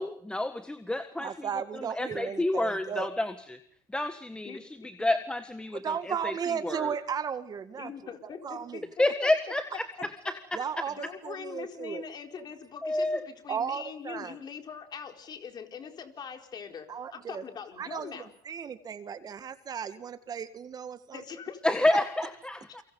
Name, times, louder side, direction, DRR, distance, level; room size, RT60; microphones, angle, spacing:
voice 1, 0.0-1.5 1.7-3.6 3.9-4.6 5.0-6.9 9.0-9.9 10.2-10.4 12.8-13.2 21.6-22.8, left 1 dB, 10° left, 9 dB, 1.5 m, -29 dB
voice 2, 1.2-3.1 5.7-7.9 8.4-8.8 10.5-12.1 13.5-14.4 16.9-17.4 17.8-21.2, right 7 dB, 40° right, 11 dB, 1.8 m, -35 dB
voice 3, 4.4-5.1 7.8-9.3 10.9-18.3 21.1-21.6, left 6 dB, 40° left, 5 dB, 4.3 m, -42 dB
29.0 x 24.5 x 5.5 m, 0.64 s
supercardioid pair, 90°, 11 cm